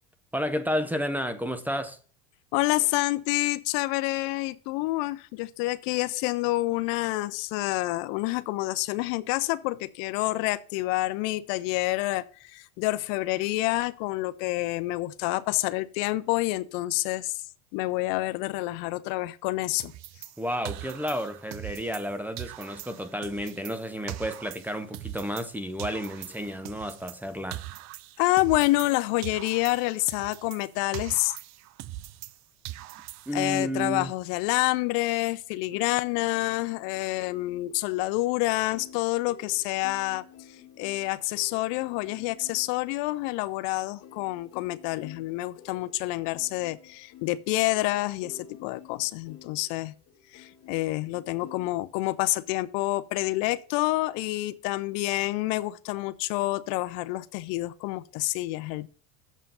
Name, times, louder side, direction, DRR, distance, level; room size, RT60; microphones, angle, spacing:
voice 1, 0.3-2.0 20.4-27.6 33.3-34.1, equal, 5° right, 0.6 m, -31 dB
voice 2, 2.5-17.4 17.7-19.9 28.2-31.3 33.3-40.2 40.8-49.9 50.3-58.9, left 19 dB, 60° left, 0.6 m, -28 dB
sound 1, 19.8-22.1 22.4-25.5 25.8-29.0 29.2-32.4 32.6-33.5, right 15 dB, 45° right, 0.5 m, -41 dB
sound 2, 35.7-51.7, left 8 dB, 40° left, 1.4 m, -52 dB
7.3 x 5.6 x 5.4 m
supercardioid pair, 115°, 38 cm